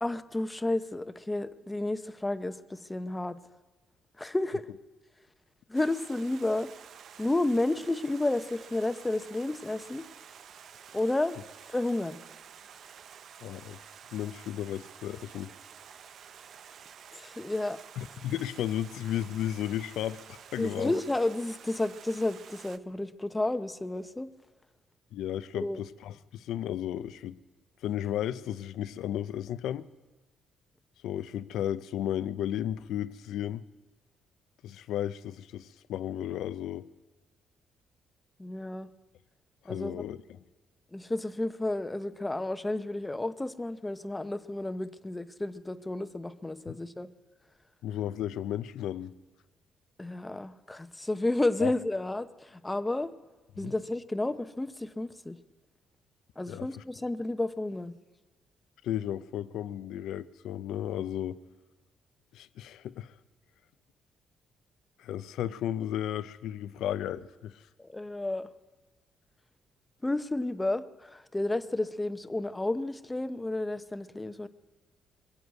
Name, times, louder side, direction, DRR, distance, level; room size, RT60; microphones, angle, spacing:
voice 1, 0.0-3.4 4.2-4.7 5.7-6.7 7.2-10.0 10.9-11.4 11.7-12.2 17.1-17.8 20.6-24.3 25.5-25.8 38.4-38.9 39.6-40.1 40.9-47.1 50.0-53.2 53.6-55.4 56.4-57.9 67.8-68.5 70.0-74.5, left 2 dB, 15° left, 0.7 m, -31 dB
Stream, 5.7-22.8, right 8 dB, 65° right, 0.5 m, -50 dB
voice 2, 13.4-13.8 14.1-15.5 18.0-20.9 25.1-27.4 27.8-29.9 31.0-33.6 34.6-36.9 39.6-40.2 47.8-49.1 51.6-51.7 53.6-53.7 56.5-56.7 58.8-61.4 62.3-63.1 65.0-67.7, left 11 dB, 85° left, 0.4 m, -34 dB
22.0 x 7.9 x 8.2 m
cardioid pair, 90°, 0 cm